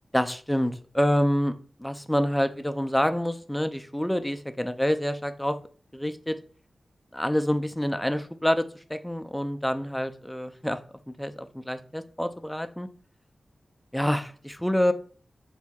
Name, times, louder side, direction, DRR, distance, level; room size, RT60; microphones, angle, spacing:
voice 1, 0.1-1.5 1.8-5.6 5.9-6.4 7.1-10.8 11.1-12.9 13.9-14.9, equal, 5° left, 9 dB, 0.3 m, -27 dB
4.4 x 3.5 x 2.3 m, 0.42 s
wide cardioid pair, 95°, 0 cm